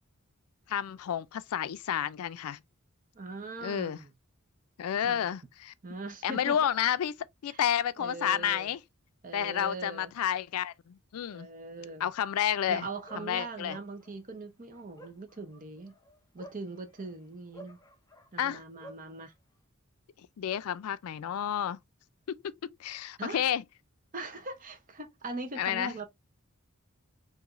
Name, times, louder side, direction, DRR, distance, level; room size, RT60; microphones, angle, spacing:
voice 1, 0.7-2.6 3.6-4.0 4.8-5.7 6.2-7.1 7.4-8.8 9.3-11.5 12.0-12.9 13.2-13.8 18.4-18.6 20.4-21.8 22.3-22.5 22.8-23.6 25.6-25.9, left 9 dB, 80° left, 0.4 m, -30 dB
voice 2, 3.1-4.1 5.0-5.2 5.8-6.7 7.5-7.6 8.0-8.7 9.2-10.1 11.3-12.1 12.7-15.9 16.3-17.8 18.3-19.3 23.2-23.4 24.1-26.1, right 2 dB, 40° right, 0.8 m, -41 dB
Bark, 13.0-14.1 14.7-17.1 17.5-19.1, right 1 dB, 15° left, 0.6 m, -51 dB
4.8 x 2.6 x 2.5 m
head